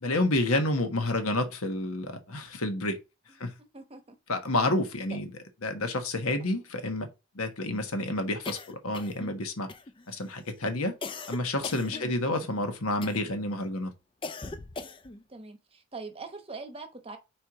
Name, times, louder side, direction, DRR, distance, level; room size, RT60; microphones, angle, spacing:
voice 1, 0.0-3.0 3.4-3.5 4.3-5.3 5.6-7.1 7.3-9.7 10.1-10.9 11.3-13.9, left 2 dB, 80° left, 1.3 m, -29 dB
voice 2, 3.7-4.2 11.9-12.1 15.3-17.2, right 3 dB, 25° right, 0.9 m, -43 dB
sound 1, 8.4-9.4 9.7-10.2 11.0-12.5 13.0-13.4 14.2-15.2, left 3 dB, 20° left, 0.4 m, -40 dB
4.6 x 4.5 x 4.8 m
head